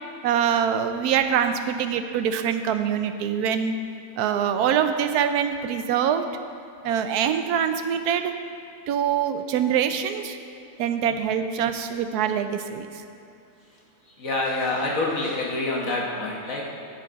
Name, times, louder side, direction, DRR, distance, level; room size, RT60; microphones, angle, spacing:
voice 1, 0.2-3.7 4.2-6.3 6.8-8.3 8.9-10.4 10.8-13.0, right 8 dB, 80° right, 8 dB, 1.1 m, -24 dB
voice 2, 14.1-16.7, left 2 dB, 60° left, -3 dB, 1.6 m, -27 dB
14.0 x 4.9 x 5.1 m, 2.5 s
omnidirectional pair, 1.6 m